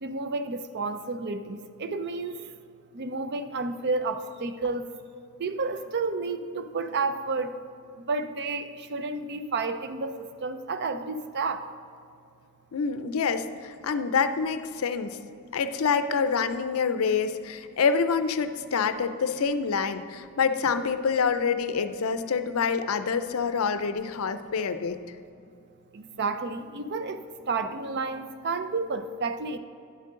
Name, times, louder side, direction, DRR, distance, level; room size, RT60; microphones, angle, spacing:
voice 1, 0.0-2.4 2.9-4.8 5.4-7.5 8.0-11.7 25.9-29.6, right 3 dB, 50° right, 10 dB, 0.5 m, -31 dB
voice 2, 12.7-15.2 15.5-25.0, left 5 dB, 65° left, 11 dB, 0.5 m, -26 dB
10.0 x 7.5 x 3.7 m, 2.4 s
head